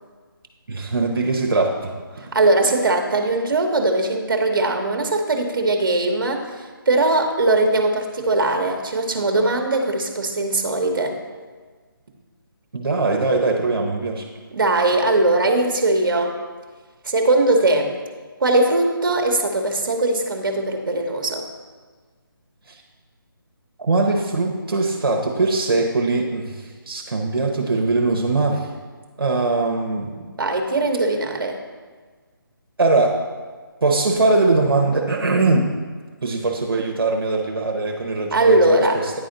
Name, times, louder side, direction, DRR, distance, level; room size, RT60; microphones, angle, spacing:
voice 1, 0.7-2.3 12.7-14.3 22.7-22.8 23.8-28.7 29.2-30.3 32.8-33.2 33.8-35.8 36.2-39.1, right 3 dB, 80° right, 0 dB, 0.9 m, -21 dB
voice 2, 2.2-11.2 14.5-16.4 17.0-17.9 18.4-21.4 30.4-31.6 38.3-39.0, right 2 dB, 60° right, 3 dB, 1.0 m, -20 dB
9.5 x 4.1 x 3.9 m, 1.5 s
figure-of-eight pair, 165°, 12 cm